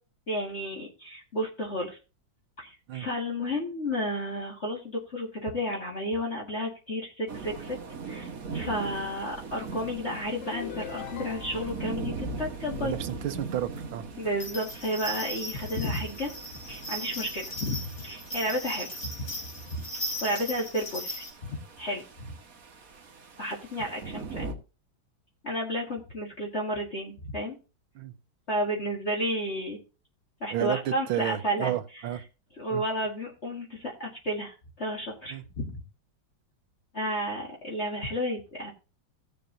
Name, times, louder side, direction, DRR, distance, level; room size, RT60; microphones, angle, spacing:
voice 1, 0.3-2.0 2.6-7.8 8.1-12.9 14.2-16.3 16.7-19.0 19.7-19.8 20.2-21.2 21.8-22.3 23.4-24.5 25.4-27.6 28.5-29.8 30.4-31.7 32.6-35.8 36.9-38.7, equal, 35° left, 2.0 m, -32 dB
sound 1, 7.3-24.5, right 4 dB, 45° right, 1.5 m, -41 dB
sound 2, 10.4-11.9, left 8 dB, 85° left, 1.7 m, -41 dB
voice 2, 12.8-14.1 27.9-28.1 30.5-32.2 32.7-32.8 35.3-35.4, right 12 dB, 80° right, 1.6 m, -31 dB
sound 3, 14.4-21.3, equal, 70° left, 4.8 m, -38 dB
17.5 x 6.7 x 2.6 m
omnidirectional pair, 2.3 m